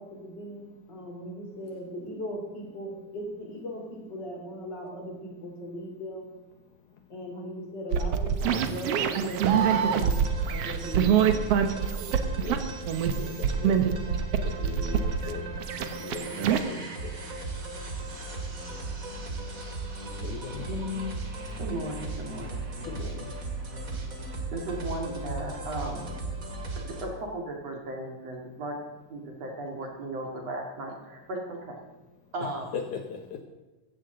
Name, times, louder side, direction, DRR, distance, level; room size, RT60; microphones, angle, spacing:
voice 1, 0.0-6.3 7.1-9.4 9.7-10.2 10.5-11.4, equal, 30° left, 0 dB, 4.2 m, -38 dB
sound 1, 7.9-16.6, right 7 dB, 70° right, 1.5 m, -25 dB
sound 2, 9.4-27.0, right 3 dB, 30° right, 2.0 m, -38 dB
voice 2, 12.4-12.7 13.1-14.0 14.4-15.5 16.0-17.2 20.2-20.7 22.8-23.3 32.4-33.4, left 6 dB, 70° left, 4 dB, 2.2 m, -39 dB
voice 3, 20.7-21.1 21.6-22.6 24.5-26.0 26.8-28.8 29.1-31.8 32.3-32.7, right 1 dB, 50° right, 0 dB, 3.1 m, -35 dB
15.5 x 15.0 x 3.9 m, 1.2 s
omnidirectional pair, 4.0 m